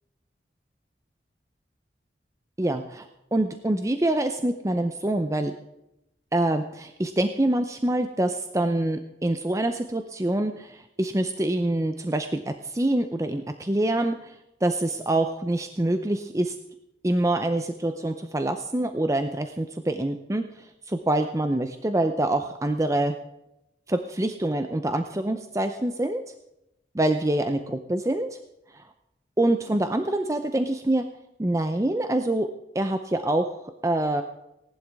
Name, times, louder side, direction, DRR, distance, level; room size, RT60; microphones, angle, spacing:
voice 1, 2.6-5.5 6.3-16.6 17.0-23.2 23.9-26.2 26.9-28.4 28.7-28.9 29.4-31.0 31.4-32.5 32.7-33.5 33.8-34.2, right 1 dB, 20° right, 7 dB, 0.6 m, -25 dB
18.0 x 11.5 x 3.5 m, 0.87 s
head